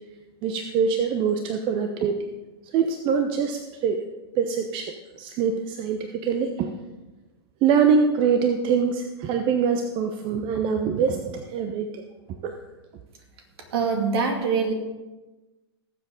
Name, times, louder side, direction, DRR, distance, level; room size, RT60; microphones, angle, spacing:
voice 1, 0.4-2.3 2.7-4.0 4.4-6.7 7.6-12.0 12.4-12.6, right 6 dB, 40° right, 6 dB, 0.9 m, -24 dB
voice 2, 13.7-14.7, right 5 dB, 65° right, 3 dB, 2.5 m, -23 dB
18.5 x 7.6 x 3.9 m, 1.1 s
hypercardioid pair, 110°, 14 cm